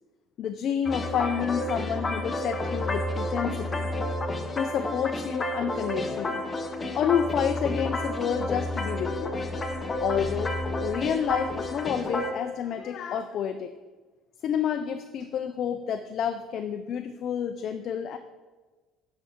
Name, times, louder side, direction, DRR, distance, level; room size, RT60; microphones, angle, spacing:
voice 1, 0.4-3.9 4.6-6.4 6.9-9.3 10.0-10.6 10.8-13.7 14.4-18.2, left 8 dB, 50° left, 8 dB, 0.4 m, -29 dB
sound 1, 0.9-12.3, left 1 dB, 20° left, 0.7 m, -30 dB
10.5 x 5.6 x 3.6 m, 1.3 s
cardioid pair, 135°, 0 cm